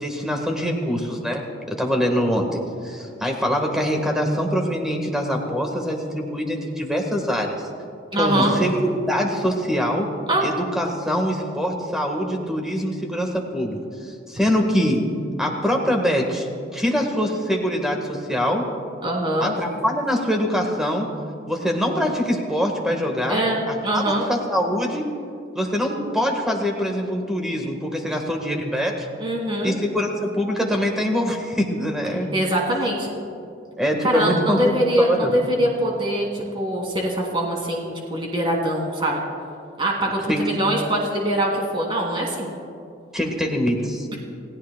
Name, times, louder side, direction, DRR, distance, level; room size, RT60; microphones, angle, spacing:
voice 1, 0.0-7.7 8.2-10.1 10.4-15.1 15.4-18.7 19.4-21.1 21.5-23.4 23.7-25.1 25.5-29.1 29.6-32.3 33.8-35.4 40.3-40.4 43.1-44.1, equal, 5° right, 2 dB, 1.4 m, -24 dB
voice 2, 8.1-8.5 10.3-10.4 19.0-19.5 23.3-24.2 29.2-29.8 32.3-33.1 34.0-39.2 39.8-42.5, right 1 dB, 25° right, -1 dB, 2.2 m, -23 dB
29.0 x 16.0 x 2.2 m, 2.4 s
head